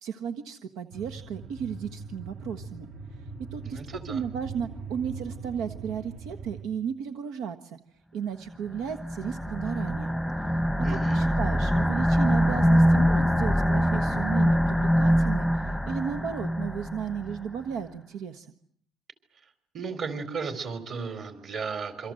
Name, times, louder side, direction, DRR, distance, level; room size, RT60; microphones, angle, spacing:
voice 1, 0.0-2.9 3.5-3.8 4.1-7.8 8.1-10.1 10.4-10.5 10.9-18.5, right 7 dB, 85° right, 8 dB, 1.5 m, -34 dB
sound 1, 0.9-6.6, right 4 dB, 70° right, 7.9 m, -41 dB
voice 2, 3.6-4.2 10.8-11.2 19.7-22.1, right 5 dB, 45° right, 10 dB, 4.2 m, -35 dB
sound 2, 8.8-17.4, equal, ahead, 1.0 m, -24 dB
27.5 x 25.0 x 7.8 m, 0.63 s
cardioid pair, 145°, 0 cm